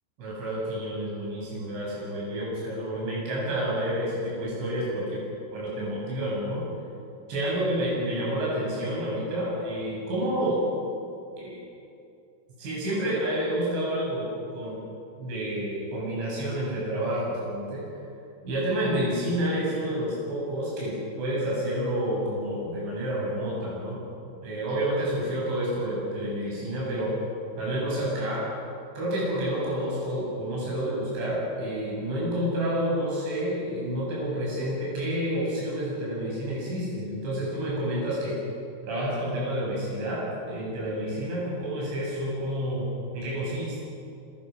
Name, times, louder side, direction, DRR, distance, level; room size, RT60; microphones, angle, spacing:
voice 1, 0.2-5.2 5.5-6.6 7.3-10.6 11.4-11.6 12.6-14.3 14.5-14.8 15.2-17.8 18.4-24.0 24.4-27.1 27.5-28.5 28.9-38.3 38.8-42.8 43.1-43.8, right 1 dB, 70° right, -6 dB, 10.0 m, -29 dB
27.0 x 26.0 x 6.6 m, 2.6 s
omnidirectional pair, 5.5 m